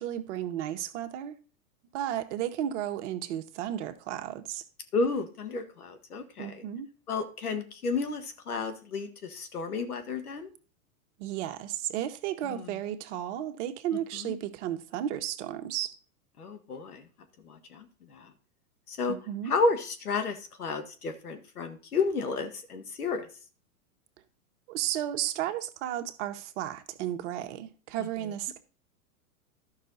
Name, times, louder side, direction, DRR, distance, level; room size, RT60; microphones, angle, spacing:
voice 1, 0.0-1.3 1.9-4.6 6.4-6.9 11.2-16.0 19.1-19.5 24.7-28.6, right 11 dB, 55° right, 1.2 m, -33 dB
voice 2, 4.9-6.6 7.1-10.5 12.5-12.7 14.1-14.3 16.4-17.1 17.4-18.3 18.9-19.1 19.4-23.3, left 4 dB, 90° left, 1.7 m, -32 dB
12.0 x 5.8 x 4.0 m
hypercardioid pair, 120°, 44 cm